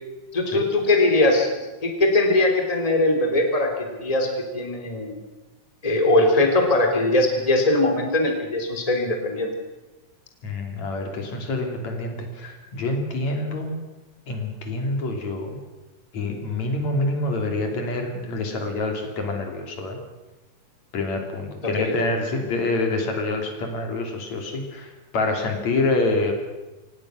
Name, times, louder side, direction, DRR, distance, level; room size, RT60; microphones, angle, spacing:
voice 1, 0.3-5.2 5.8-9.5 21.6-22.0, left 2 dB, 10° left, 3 dB, 3.0 m, -21 dB
voice 2, 10.4-13.8 14.3-15.6 16.1-20.0 20.9-26.3, left 2 dB, 70° left, 4 dB, 4.2 m, -26 dB
26.5 x 18.5 x 6.3 m, 1.1 s
omnidirectional pair, 3.3 m